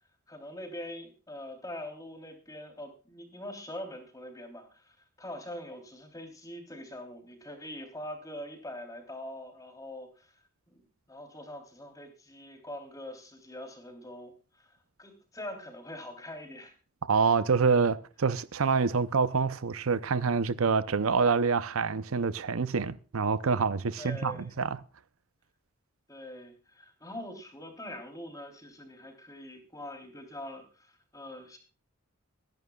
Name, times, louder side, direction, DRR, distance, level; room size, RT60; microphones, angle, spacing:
voice 1, 0.3-10.3 10.7-16.7 24.0-24.5 26.1-31.6, left 1 dB, 15° left, 3.2 m, -43 dB
voice 2, 17.0-24.7, right 5 dB, 80° right, 0.6 m, -26 dB
23.0 x 11.0 x 2.3 m
head